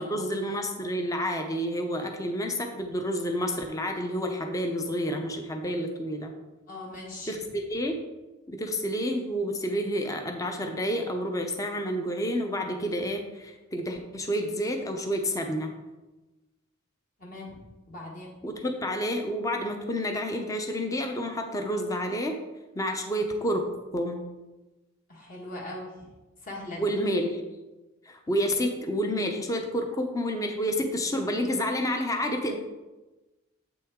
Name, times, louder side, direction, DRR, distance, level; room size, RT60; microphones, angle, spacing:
voice 1, 0.0-6.3 7.3-8.0 8.5-15.7 18.4-22.3 22.8-23.6 23.9-24.2 26.8-27.4 28.1-32.6, equal, 15° left, 4 dB, 0.6 m, -29 dB
voice 2, 6.7-7.4 17.2-17.6 17.9-18.3 25.1-25.9 26.4-26.9, left 1 dB, 45° left, -3 dB, 1.5 m, -40 dB
7.9 x 6.2 x 3.6 m, 1.1 s
head